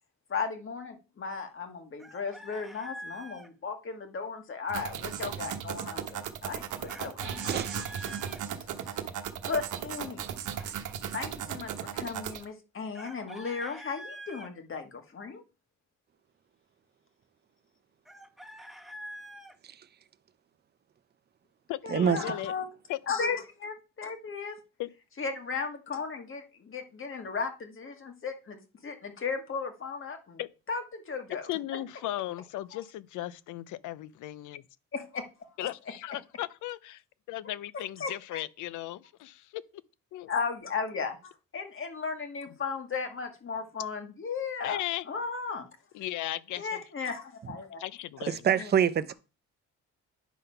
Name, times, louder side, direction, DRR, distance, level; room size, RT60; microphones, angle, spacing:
voice 1, 0.3-7.6 8.1-8.2 8.9-9.0 9.4-10.8 11.1-15.4 21.8-22.7 23.1-24.6 25.2-30.4 30.7-31.5 32.7-32.8 34.9-35.2 35.6-35.7 38.0-38.4 40.3-44.8 45.1-45.7 46.6-47.8 48.5-48.7, left 5 dB, 45° left, 1.6 m, -36 dB
Chicken rooster, 2.0-3.5 6.9-8.4 12.9-14.5 18.1-19.6, equal, ahead, 1.0 m, -45 dB
sound 1, 4.7-12.4, right 9 dB, 75° right, 1.0 m, -36 dB
voice 2, 21.7-22.5 22.9-23.0 24.8-24.9 30.4-30.5 31.5-34.6 35.6-37.0 37.3-39.6 40.1-40.3 44.6-45.0 45.9-46.8 47.8-48.4, left 14 dB, 85° left, 0.5 m, -36 dB
voice 3, 48.3-49.1, right 8 dB, 35° right, 0.6 m, -26 dB
9.2 x 3.9 x 5.5 m
cardioid pair, 90°, 30 cm